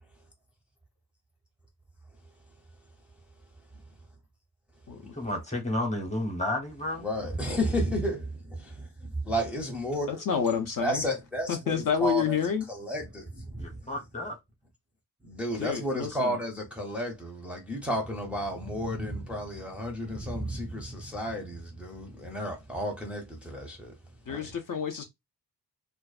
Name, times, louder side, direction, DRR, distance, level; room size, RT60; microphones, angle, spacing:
voice 1, 5.1-7.1 13.6-14.4, left 1 dB, 15° left, 0.9 m, -31 dB
voice 2, 7.0-10.2 10.8-11.7 12.0-12.4 12.7-13.8 15.2-23.9 24.3-24.4, equal, 5° right, 0.6 m, -32 dB
voice 3, 10.1-11.0 11.5-12.7 15.6-16.4 24.3-25.0, left 7 dB, 50° left, 0.6 m, -29 dB
2.5 x 2.2 x 2.4 m
wide cardioid pair, 110°, 42 cm